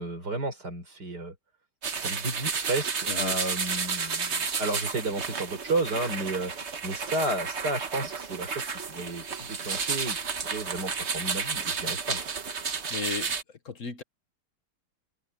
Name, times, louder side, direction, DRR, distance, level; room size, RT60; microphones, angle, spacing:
voice 1, 0.0-1.3 2.0-10.2 10.5-12.2, right 2 dB, 80° right, 5.7 m, -32 dB
sound 1, 1.8-13.4, right 5 dB, 45° right, 1.5 m, -32 dB
voice 2, 12.9-13.4 13.6-14.0, left 4 dB, 55° left, 1.6 m, -35 dB
omnidirectional pair, 1.7 m